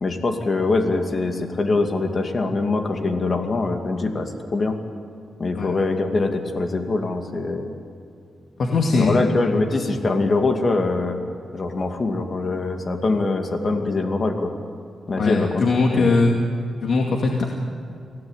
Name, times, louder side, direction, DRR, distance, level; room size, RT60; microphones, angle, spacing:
voice 1, 0.0-4.8 5.4-7.7 8.9-11.2 11.5-14.5 15.1-16.2, left 3 dB, 45° left, 5 dB, 2.5 m, -23 dB
voice 2, 8.6-9.3 15.2-16.3 16.8-17.5, left 3 dB, 70° left, 1 dB, 2.3 m, -20 dB
25.5 x 17.0 x 9.2 m, 2.3 s
cardioid pair, 75°, 0 cm